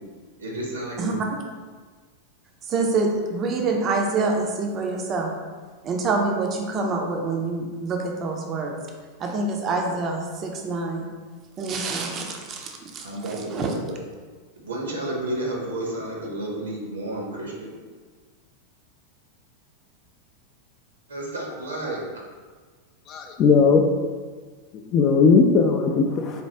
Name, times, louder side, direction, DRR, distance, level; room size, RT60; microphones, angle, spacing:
voice 1, 0.4-1.2 13.0-14.0 14.6-17.7 21.1-22.2, right 1 dB, 70° right, -2 dB, 0.8 m, -31 dB
voice 2, 2.7-5.3 5.8-8.8 9.2-11.1 11.6-13.7, right 3 dB, 30° right, 2 dB, 0.5 m, -26 dB
voice 3, 23.1-23.8 24.7-26.4, left 5 dB, 35° left, 3 dB, 0.3 m, -18 dB
4.3 x 2.3 x 3.3 m, 1.5 s
figure-of-eight pair, 90°, 0 cm